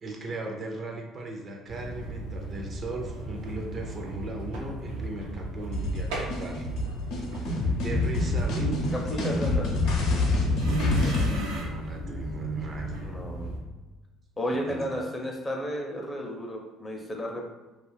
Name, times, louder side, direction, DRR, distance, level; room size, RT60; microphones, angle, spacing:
voice 1, 0.0-6.7 7.8-9.6 10.7-13.0 14.5-14.8, right 2 dB, 45° right, 2 dB, 0.5 m, -36 dB
sound 1, 1.7-13.6, right 1 dB, 85° right, 0.6 m, -37 dB
sound 2, 5.7-11.3, left 2 dB, 75° left, 0.7 m, -26 dB
voice 2, 8.9-10.0 13.0-13.5 14.4-17.5, equal, 20° left, 1 dB, 0.6 m, -33 dB
2.4 x 2.3 x 3.3 m, 1.2 s
supercardioid pair, 85°, 0 cm